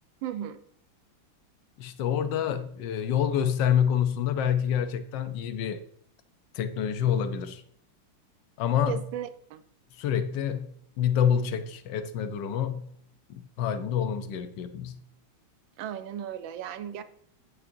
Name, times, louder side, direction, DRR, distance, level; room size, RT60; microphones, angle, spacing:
voice 1, 0.2-0.6 8.9-9.6 15.8-17.0, right 10 dB, 70° right, 1.4 m, -35 dB
voice 2, 1.8-5.8 6.5-7.6 8.6-9.0 10.0-10.7 11.0-12.9 13.3-15.0, left 8 dB, 65° left, 1.3 m, -27 dB
11.0 x 9.1 x 2.6 m
omnidirectional pair, 2.3 m